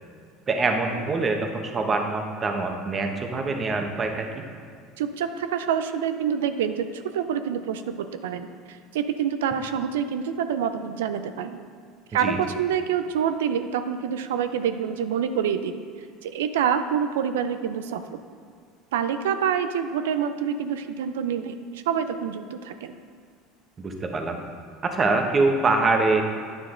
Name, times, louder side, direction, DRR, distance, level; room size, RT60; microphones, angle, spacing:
voice 1, 0.5-4.4 12.2-12.4 23.8-24.4 24.9-26.2, right 3 dB, 30° right, 4 dB, 1.0 m, -24 dB
voice 2, 5.0-8.5 8.9-11.6 12.1-15.8 16.2-18.2 18.9-23.0, right 8 dB, 85° right, 9 dB, 0.5 m, -27 dB
9.6 x 6.4 x 3.8 m, 2.1 s
supercardioid pair, 90°, 0 cm